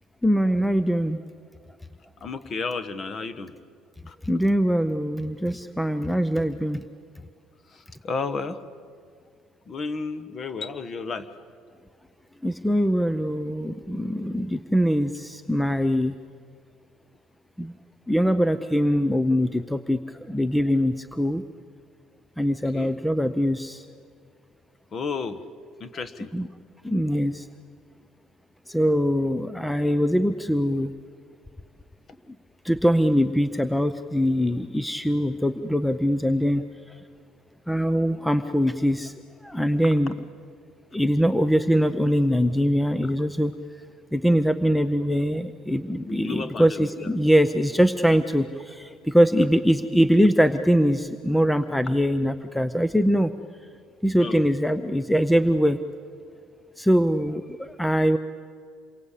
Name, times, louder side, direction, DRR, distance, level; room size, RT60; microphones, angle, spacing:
voice 1, 0.2-1.2 4.2-6.8 12.4-16.2 17.6-17.7 18.1-21.4 22.4-23.9 26.3-26.5 26.8-27.5 28.7-30.9 32.6-37.0 37.7-39.1 39.4-40.1 40.9-43.5 44.1-53.3 54.0-55.8 56.8-58.2, equal, 5° left, 11 dB, 0.6 m, -22 dB
voice 2, 2.2-3.5 4.1-4.2 7.7-8.6 9.7-11.3 22.7-22.9 24.9-25.4 25.8-26.3 46.1-47.1 54.2-54.4, left 4 dB, 30° left, 12 dB, 1.3 m, -32 dB
28.0 x 23.0 x 8.3 m, 2.1 s
cardioid pair, 155°, 0 cm